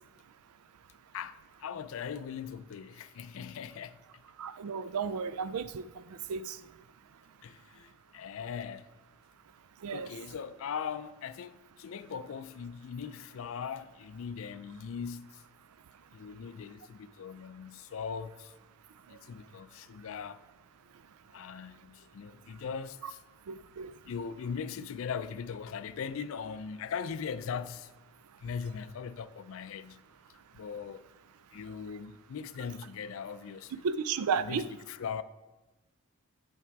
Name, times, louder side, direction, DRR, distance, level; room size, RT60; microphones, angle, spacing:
voice 1, 1.1-4.0 7.4-8.9 9.9-15.4 16.1-18.5 19.1-20.4 21.3-23.2 24.1-27.9 28.4-30.0 30.5-31.0 31.5-33.9 34.4-35.2, left 6 dB, 65° left, 0.4 m, -40 dB
voice 2, 4.4-6.6 9.8-10.1 19.1-19.2 23.5-23.9 33.8-34.7, right 6 dB, 80° right, 0.4 m, -33 dB
7.3 x 5.8 x 4.6 m
head